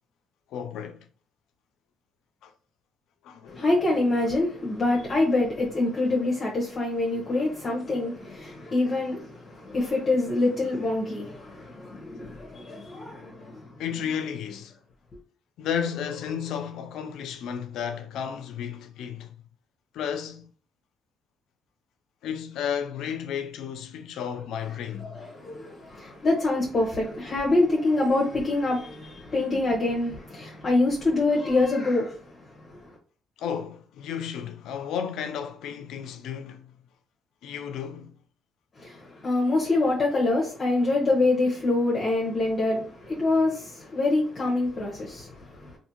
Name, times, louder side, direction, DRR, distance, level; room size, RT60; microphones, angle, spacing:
voice 1, 0.5-1.1 2.4-2.5 3.2-3.6 13.8-14.8 15.6-19.3 19.9-20.5 22.2-25.3 33.4-36.7 37.4-38.2, left 8 dB, 85° left, 0.4 m, -33 dB
voice 2, 3.5-13.7 25.2-32.1 32.7-32.8 38.8-45.8, left 2 dB, 40° left, 0.9 m, -25 dB
2.6 x 2.6 x 2.8 m
cardioid pair, 90°, 0 cm